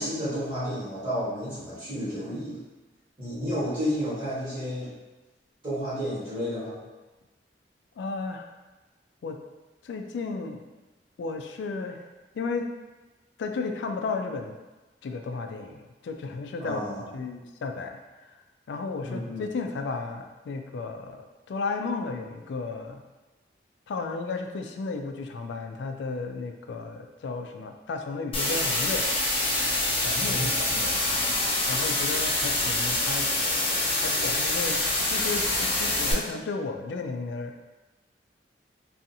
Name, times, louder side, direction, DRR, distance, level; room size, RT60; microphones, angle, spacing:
voice 1, 0.0-2.6 3.2-4.9 5.6-6.8 16.6-17.0 19.0-19.5 30.2-30.9, equal, 30° right, -12 dB, 1.3 m, -31 dB
voice 2, 8.0-8.5 9.2-9.4 9.8-10.6 11.2-12.1 12.3-12.7 13.4-14.5 15.0-16.8 17.1-18.0 18.7-23.0 23.9-29.1 30.0-31.4 31.7-33.3 34.0-37.6, left 4 dB, 80° left, 5 dB, 0.3 m, -34 dB
sound 1, 28.3-36.1, left 2 dB, 35° left, 0.6 m, -26 dB
2.6 x 2.4 x 2.7 m, 1.2 s
head